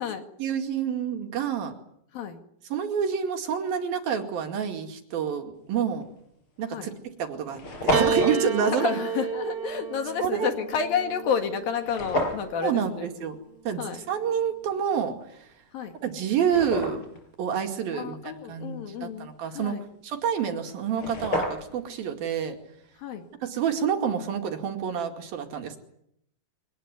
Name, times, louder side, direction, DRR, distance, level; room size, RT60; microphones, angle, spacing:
voice 1, 0.4-1.7 2.7-6.0 6.6-6.9 7.2-8.9 10.2-10.5 12.6-13.4 13.7-15.1 16.0-17.0 17.4-19.8 20.0-22.6 23.4-25.8, right 7 dB, 80° right, 5 dB, 4.1 m, -28 dB
sound 1, 6.0-6.2 6.9-7.0 7.2-7.3 7.5-8.4 11.8-12.5 15.4-15.5 16.1-17.2 20.6-20.7 20.9-21.9, left 1 dB, 35° left, 5.7 m, -29 dB
Piano, 7.9-12.4 13.4-14.2, right 5 dB, 55° right, 3.3 m, -31 dB
voice 2, 8.7-13.1 13.8-14.0 15.7-15.9 17.9-19.8 23.0-23.3, left 7 dB, 75° left, 6 dB, 3.7 m, -30 dB
24.5 x 19.5 x 9.7 m, 0.74 s
omnidirectional pair, 4.2 m